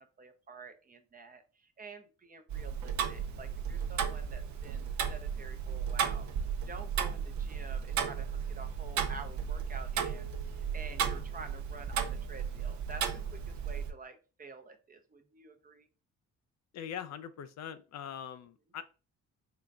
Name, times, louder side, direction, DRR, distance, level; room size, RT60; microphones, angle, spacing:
voice 1, 0.0-6.3 6.6-15.9, right 4 dB, 30° right, 7 dB, 0.6 m, -49 dB
Tick-tock, 2.5-13.9, right 7 dB, 70° right, 0.7 m, -35 dB
voice 2, 16.7-18.9, left 9 dB, 65° left, 12 dB, 0.5 m, -42 dB
3.8 x 3.7 x 2.3 m, 0.33 s
cardioid pair, 90°, 30 cm